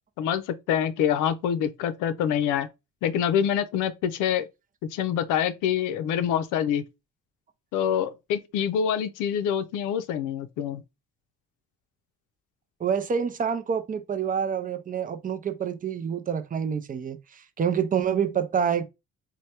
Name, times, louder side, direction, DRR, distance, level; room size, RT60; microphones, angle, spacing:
voice 1, 0.2-2.7 3.0-4.4 4.9-6.8 7.7-10.8, left 9 dB, 90° left, 0.5 m, -26 dB
voice 2, 12.8-18.8, right 7 dB, 30° right, 0.4 m, -27 dB
3.2 x 2.2 x 2.8 m
cardioid pair, 90°, 30 cm